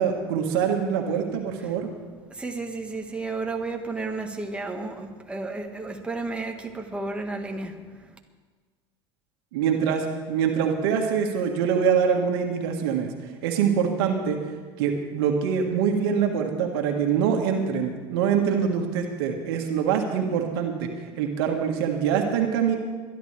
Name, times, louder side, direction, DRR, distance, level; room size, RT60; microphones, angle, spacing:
voice 1, 0.0-1.9 9.5-13.1 13.4-14.4 14.8-20.9 21.2-22.8, right 7 dB, 75° right, 3 dB, 1.7 m, -24 dB
voice 2, 2.3-7.7, right 3 dB, 10° right, 2 dB, 1.6 m, -32 dB
23.0 x 11.0 x 3.4 m, 1.4 s
hypercardioid pair, 85°, 13 cm